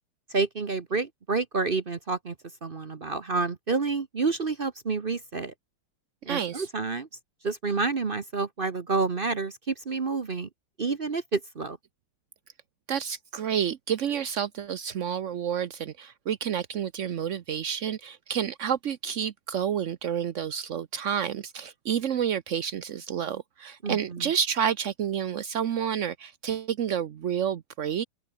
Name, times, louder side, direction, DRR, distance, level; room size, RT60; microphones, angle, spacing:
voice 1, 0.3-2.3 2.6-5.5 6.2-7.1 7.4-10.5 10.8-11.8 23.8-24.3, right 4 dB, 40° right, 0.8 m, -29 dB
voice 2, 6.3-6.7 12.9-28.0, right 8 dB, 80° right, 0.6 m, -29 dB
open air
omnidirectional pair, 2.4 m